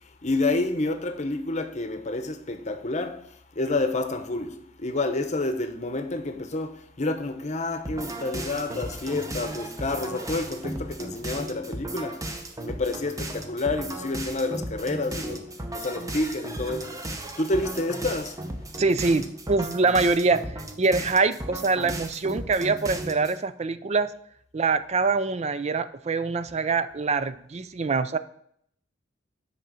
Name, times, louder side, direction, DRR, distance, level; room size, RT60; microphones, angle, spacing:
voice 1, 0.2-3.3 3.5-12.2 12.6-15.4 15.7-17.0 17.4-18.4, left 2 dB, 40° left, 0.9 m, -29 dB
sound 1, 7.8-23.4, right 1 dB, 20° right, 0.8 m, -36 dB
voice 2, 18.8-24.1 24.5-28.2, right 4 dB, 35° right, 0.5 m, -24 dB
6.4 x 5.6 x 7.2 m
head